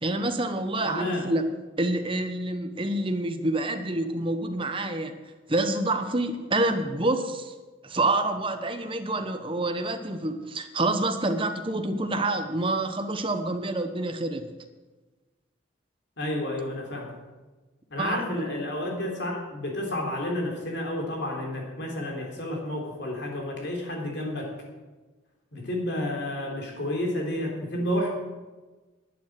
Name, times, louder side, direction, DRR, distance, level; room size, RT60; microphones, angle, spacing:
voice 1, 0.0-1.4 1.8-5.1 5.5-7.5 7.8-14.5 18.0-18.3, right 2 dB, 25° right, 7 dB, 1.0 m, -27 dB
voice 2, 0.8-1.3 16.2-17.1 17.9-24.5 25.5-28.1, left 1 dB, 60° left, 0 dB, 3.6 m, -30 dB
11.5 x 9.3 x 7.7 m, 1.2 s
head